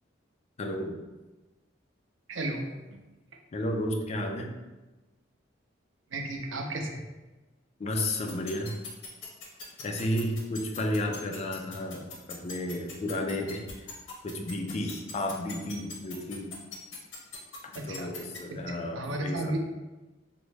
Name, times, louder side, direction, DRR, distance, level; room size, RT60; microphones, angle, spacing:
voice 1, 0.6-1.0 3.5-4.5 7.8-8.7 9.8-13.6 14.2-16.6 17.7-19.5, left 1 dB, 35° left, 3 dB, 0.4 m, -32 dB
voice 2, 2.3-3.0 6.1-7.0 17.7-18.2 18.5-19.6, right 1 dB, 80° right, 2 dB, 0.5 m, -34 dB
sound 1, 8.3-18.4, left 6 dB, 90° left, 0.7 m, -41 dB
3.6 x 2.0 x 3.2 m, 1.1 s
head